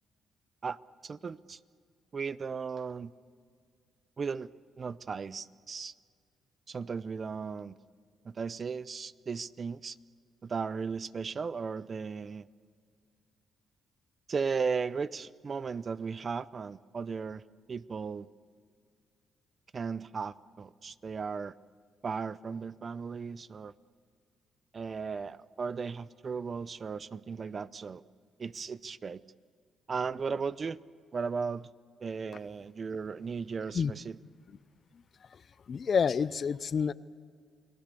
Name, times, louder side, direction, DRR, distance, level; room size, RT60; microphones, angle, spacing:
voice 1, 0.6-1.6 2.1-3.1 4.2-4.5 4.8-5.9 6.7-7.8 8.2-10.0 10.4-12.5 14.3-17.4 17.7-18.3 19.7-21.6 22.0-23.7 24.7-28.0 28.4-29.2 29.9-30.8 31.1-31.7 32.0-34.2, right 5 dB, 40° right, 18 dB, 0.6 m, -36 dB
voice 2, 35.7-36.9, left 6 dB, 50° left, 18 dB, 0.6 m, -28 dB
29.5 x 19.0 x 6.8 m, 2.1 s
cardioid pair, 90°, 0 cm